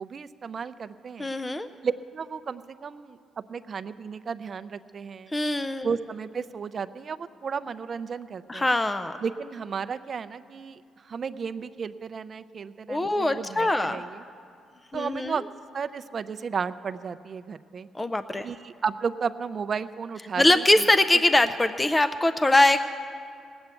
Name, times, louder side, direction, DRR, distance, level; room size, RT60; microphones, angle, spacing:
voice 1, 0.0-1.3 1.8-3.2 3.5-5.3 5.8-8.7 9.2-14.2 14.9-15.4 15.7-17.9 18.4-20.9, right 6 dB, 45° right, 13 dB, 0.5 m, -33 dB
voice 2, 1.2-1.7 5.3-5.9 8.5-9.2 12.9-14.0 14.9-15.3 17.9-18.5 20.4-22.8, left 2 dB, 15° left, 11 dB, 0.4 m, -22 dB
18.5 x 7.9 x 8.3 m, 2.3 s
cardioid pair, 90°, 0 cm